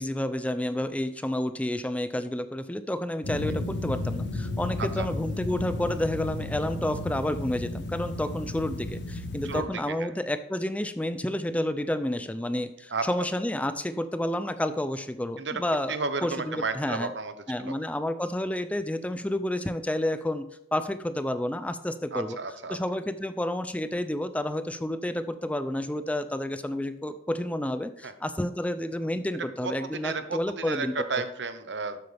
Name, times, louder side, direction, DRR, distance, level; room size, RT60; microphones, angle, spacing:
voice 1, 0.0-17.1 17.5-22.4 22.7-31.2, left 1 dB, 5° left, 11 dB, 0.4 m, -30 dB
sound 1, 3.2-9.6, left 2 dB, 75° left, 1.3 m, -33 dB
voice 2, 9.4-10.1 12.9-13.1 15.4-15.6 15.9-17.3 17.6-17.7 22.1-22.8 28.0-28.1 29.6-32.0, right 4 dB, 75° right, 10 dB, 0.9 m, -32 dB
12.0 x 7.9 x 3.4 m, 0.78 s
head